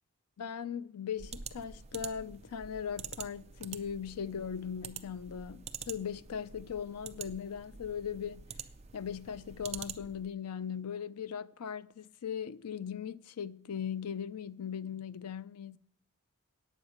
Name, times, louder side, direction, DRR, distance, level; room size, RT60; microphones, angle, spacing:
voice 1, 0.4-8.5 8.9-15.8, left 7 dB, 85° left, 0.5 m, -39 dB
sound 1, 1.2-10.3, right 7 dB, 30° right, 0.5 m, -47 dB
8.8 x 8.7 x 6.4 m
head